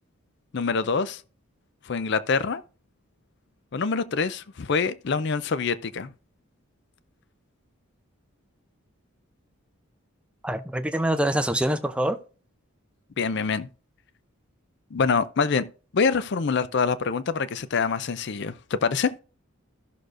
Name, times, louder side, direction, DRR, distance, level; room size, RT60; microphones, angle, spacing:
voice 1, 0.5-1.2 1.9-2.6 3.7-6.1 13.2-13.7 14.9-15.7 15.9-19.1, left 5 dB, 55° left, 0.5 m, -25 dB
voice 2, 10.4-12.2, right 1 dB, 5° right, 0.5 m, -25 dB
15.5 x 6.3 x 2.5 m
head